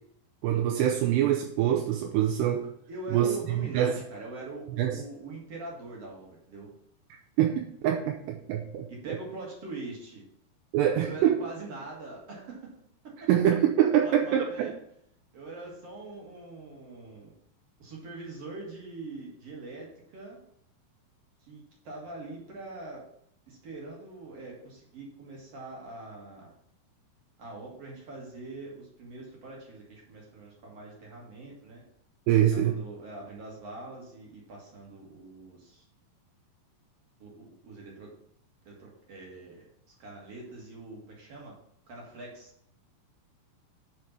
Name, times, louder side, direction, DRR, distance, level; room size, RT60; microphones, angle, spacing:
voice 1, 0.4-2.7 3.1-4.0 4.8-5.0 7.4-9.2 10.7-11.4 13.3-14.7 32.3-32.8, right 11 dB, 85° right, 3 dB, 2.7 m, -25 dB
voice 2, 2.9-6.7 8.9-10.2 10.9-12.7 13.0-13.3 13.9-14.7 15.3-17.3 17.8-20.4 21.4-23.1 23.5-26.5 27.4-31.8 32.5-35.9 37.2-38.1 38.7-41.6 41.9-42.5, right 2 dB, 45° right, -3 dB, 2.2 m, -43 dB
6.6 x 5.3 x 5.9 m, 0.70 s
omnidirectional pair, 4.9 m